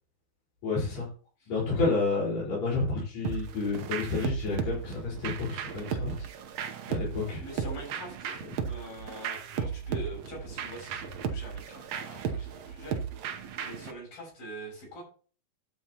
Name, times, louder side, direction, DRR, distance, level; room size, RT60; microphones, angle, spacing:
voice 1, 0.6-1.1 1.5-6.1 6.9-7.4, left 3 dB, 45° left, -7 dB, 5.8 m, -30 dB
sound 1, 3.2-13.9, right 7 dB, 80° right, 1.4 m, -35 dB
voice 2, 7.4-8.3 8.7-13.0 13.3-15.0, right 1 dB, 65° left, -2 dB, 8.3 m, -44 dB
12.5 x 8.6 x 3.0 m, 0.39 s
omnidirectional pair, 4.5 m